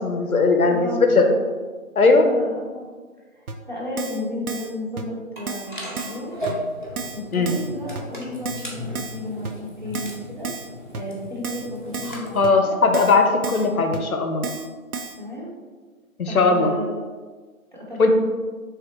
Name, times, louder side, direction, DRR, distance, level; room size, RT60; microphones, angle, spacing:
voice 1, 0.0-0.9 1.1-1.2 2.0-2.3 7.3-7.5 12.3-14.4 16.2-16.7 18.0-18.1, left 3 dB, 80° left, 4 dB, 0.7 m, -18 dB
voice 2, 0.7-1.3 2.2-2.9 3.3-6.4 7.1-10.5 10.9-12.8 15.2-15.5 16.2-16.9 17.7-18.1, left 1 dB, 35° right, -6 dB, 0.7 m, -33 dB
Keyboard (musical), 3.5-3.6 4.0-4.2 4.5-4.7 5.0-5.1 5.5-5.7 6.0-6.2 6.5-6.6 7.0-7.2 7.5-7.7 8.0-8.1 8.5-8.7 9.0-9.2 9.4-9.5 9.9-10.2 10.4-10.7 10.9-11.0 11.4-11.7 11.9-12.2 12.4-12.5 12.9-13.2 13.4-13.7 13.9-14.0 14.4-14.7 14.9-15.2, right 5 dB, 75° right, 0.6 m, -32 dB
sound 1, 5.4-12.4, equal, 35° left, 0.5 m, -36 dB
3.6 x 3.1 x 3.0 m, 1.4 s
figure-of-eight pair, 170°, 43 cm